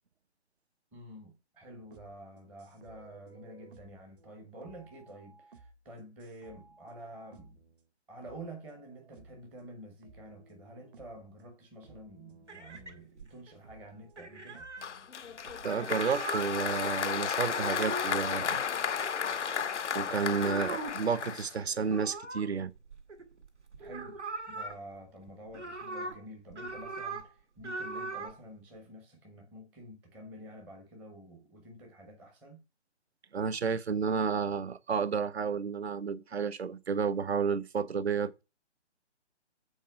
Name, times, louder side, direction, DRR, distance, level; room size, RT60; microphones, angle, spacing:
voice 1, 0.9-7.6 8.1-14.7 23.8-24.2 24.5-32.6, right 1 dB, 5° right, 0.6 m, -49 dB
sound 1, 1.8-7.9 8.2-9.7 10.0-11.3 11.8-13.1 13.6-15.8, right 4 dB, 50° right, 1.2 m, -58 dB
sound 2, 12.5-13.5 14.2-14.9 15.5-16.5 17.4-18.2 19.0-19.8 20.3-21.0 21.9-23.5 23.7-24.7 25.3-26.2 26.5-27.3 27.6-28.4, right 2 dB, 80° right, 1.9 m, -40 dB
Applause, 14.8-21.9, left 7 dB, 80° left, 0.6 m, -33 dB
voice 2, 15.6-18.6 19.9-22.7 33.3-38.4, right 6 dB, 65° right, 0.8 m, -31 dB
8.4 x 4.3 x 6.0 m
figure-of-eight pair, 135°, 35 cm